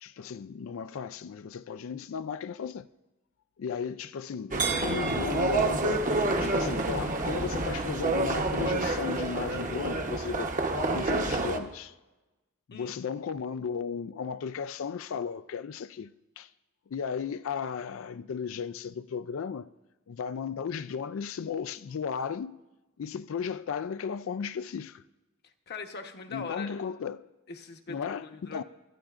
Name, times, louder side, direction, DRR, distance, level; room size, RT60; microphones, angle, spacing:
voice 1, 0.0-2.9 3.6-10.5 10.9-11.9 12.7-16.5 16.9-19.7 20.1-22.6 23.0-25.0 26.3-27.3 27.9-28.6, left 6 dB, 70° left, 0.4 m, -35 dB
sound 1, 4.5-11.6, right 2 dB, 40° right, 0.9 m, -28 dB
voice 2, 25.4-26.8 27.5-28.6, left 4 dB, 50° left, 1.0 m, -41 dB
23.0 x 13.0 x 2.5 m
head